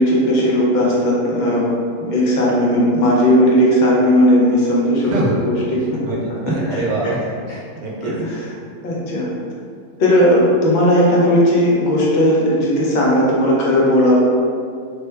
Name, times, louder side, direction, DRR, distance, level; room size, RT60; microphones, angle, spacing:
voice 1, 0.0-1.7 2.0-5.1 5.5-6.0 6.7-6.8 8.0-8.1 8.8-9.3 10.0-14.1, equal, 55° left, -5 dB, 0.5 m, -16 dB
voice 2, 5.0-5.4 6.0-8.1, right 2 dB, 85° right, -4 dB, 1.2 m, -24 dB
3.2 x 2.1 x 3.2 m, 2.2 s
omnidirectional pair, 1.5 m